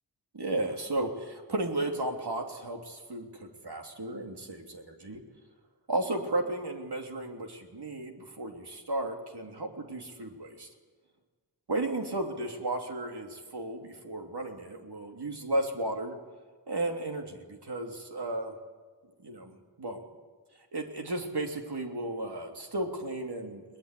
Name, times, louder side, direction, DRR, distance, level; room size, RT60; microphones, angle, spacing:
voice 1, 0.3-5.2 5.9-10.7 11.7-16.2 16.7-18.6 19.2-20.0 20.7-23.6, right 2 dB, 65° right, 2 dB, 3.2 m, -34 dB
21.5 x 20.5 x 8.4 m, 1.4 s
wide cardioid pair, 70°, 43 cm